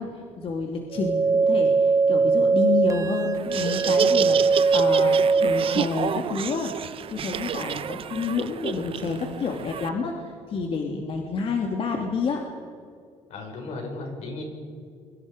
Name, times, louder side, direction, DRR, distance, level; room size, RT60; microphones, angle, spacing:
voice 1, 0.0-6.7 7.1-12.4, left 4 dB, 50° left, 2 dB, 2.6 m, -29 dB
sound 1, 0.9-5.9, right 4 dB, 25° right, 0.5 m, -21 dB
Laughter, 3.3-9.9, right 8 dB, 50° right, 0.8 m, -31 dB
voice 2, 13.3-14.4, left 2 dB, 75° left, 2 dB, 6.2 m, -35 dB
29.0 x 24.0 x 5.2 m, 2.2 s
cardioid pair, 105°, 12 cm